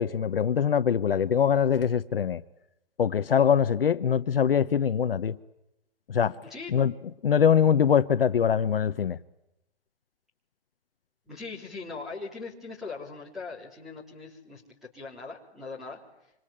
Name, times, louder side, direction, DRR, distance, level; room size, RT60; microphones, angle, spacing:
voice 1, 0.0-2.4 3.0-5.4 6.1-6.4 6.7-6.9 7.2-9.2, left 8 dB, 60° left, 1.0 m, -23 dB
voice 2, 6.4-6.7 11.2-16.3, left 4 dB, ahead, 3.3 m, -40 dB
26.5 x 26.0 x 8.7 m
hypercardioid pair, 180°, 33 cm